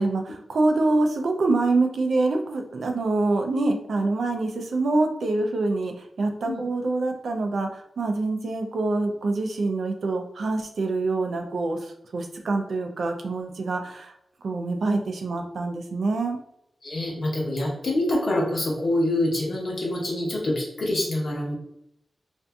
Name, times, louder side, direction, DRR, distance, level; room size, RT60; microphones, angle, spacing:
voice 1, 0.0-14.1 14.4-16.4, right 2 dB, 75° right, 4 dB, 0.3 m, -25 dB
voice 2, 16.8-21.5, left 1 dB, 60° left, -3 dB, 0.8 m, -26 dB
2.5 x 2.5 x 2.2 m, 0.76 s
wide cardioid pair, 150°, 0 cm